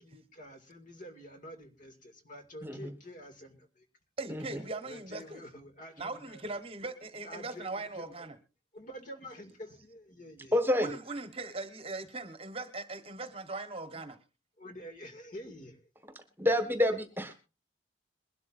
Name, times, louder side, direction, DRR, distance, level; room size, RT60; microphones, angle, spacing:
voice 1, 0.0-3.9 4.8-6.5 7.2-8.1 8.7-10.6 14.6-15.8, equal, 45° left, 6 dB, 2.2 m, -48 dB
voice 2, 2.6-2.9 4.3-4.6 10.5-10.9 16.1-17.3, left 1 dB, 10° right, 8 dB, 1.5 m, -29 dB
voice 3, 4.2-5.4 6.0-8.4 10.8-14.2, right 3 dB, 30° right, 10 dB, 1.2 m, -40 dB
22.0 x 12.0 x 2.5 m, 0.31 s
head